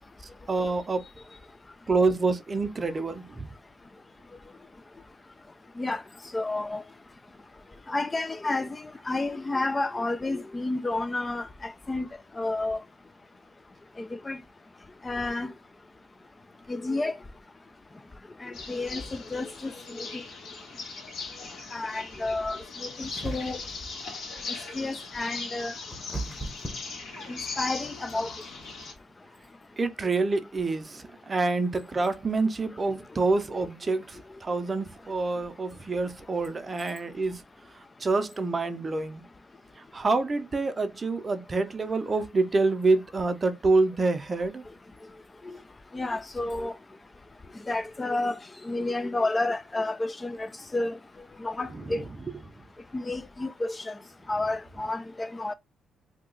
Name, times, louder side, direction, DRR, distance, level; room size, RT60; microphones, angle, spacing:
voice 1, 0.5-1.0 1.9-3.5 29.8-37.4 37.7-39.2 39.8-44.7 51.7-52.0, right 3 dB, 30° right, 0.5 m, -27 dB
voice 2, 6.3-6.8 7.9-8.7 9.1-12.1 12.4-12.8 14.3-14.4 15.1-15.5 16.7-17.1 18.4-19.0 19.3-19.7 21.7-22.6 23.0-23.6 24.8-25.7 27.3-28.3 45.5-45.6 45.9-46.7 47.7-48.3 48.7-50.5 50.7-50.9 51.4-52.0 52.9-53.9 54.3-55.5, left 2 dB, 20° left, 0.3 m, -30 dB
sound 1, 18.5-28.9, left 4 dB, 70° left, 1.5 m, -39 dB
sound 2, 23.0-23.8 25.3-27.6, right 1 dB, ahead, 0.9 m, -37 dB
2.8 x 2.3 x 3.7 m
cardioid pair, 90°, 0 cm